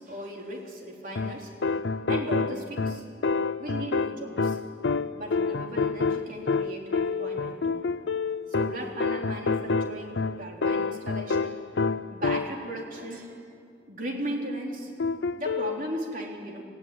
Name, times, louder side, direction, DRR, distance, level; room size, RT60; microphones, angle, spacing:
voice 1, 0.0-1.6 2.1-3.0 3.6-4.6 5.1-7.9 8.5-11.6 12.1-13.5 13.9-14.9 15.4-16.7, right 1 dB, 50° right, 0 dB, 3.6 m, -37 dB
sound 1, 1.1-12.8 15.0-15.8, left 4 dB, 80° left, 0.6 m, -28 dB
25.0 x 16.5 x 9.8 m, 2.3 s
head